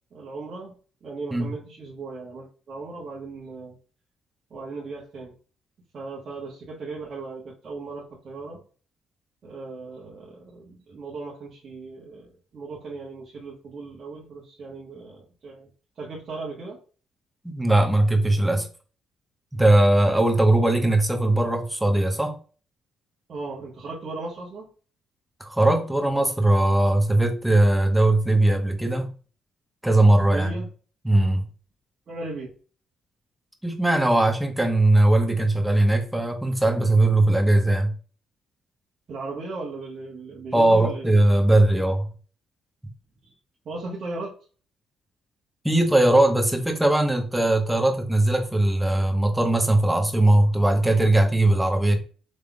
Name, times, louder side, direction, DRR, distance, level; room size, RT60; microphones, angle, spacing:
voice 1, 0.1-0.7 1.0-3.7 4.5-5.3 5.9-8.6 9.4-15.7 16.0-16.8 23.3-24.7 30.3-30.7 32.1-32.5 39.1-41.1 43.2-43.3 43.6-44.3, right 3 dB, 50° right, -5 dB, 1.2 m, -37 dB
voice 2, 17.4-18.7 19.5-22.3 25.4-29.1 29.8-30.5 31.0-31.4 33.6-37.9 40.5-42.1 45.6-52.0, right 1 dB, 5° right, 4 dB, 1.1 m, -20 dB
5.2 x 3.4 x 2.3 m, 0.39 s
hypercardioid pair, 45°, 0 cm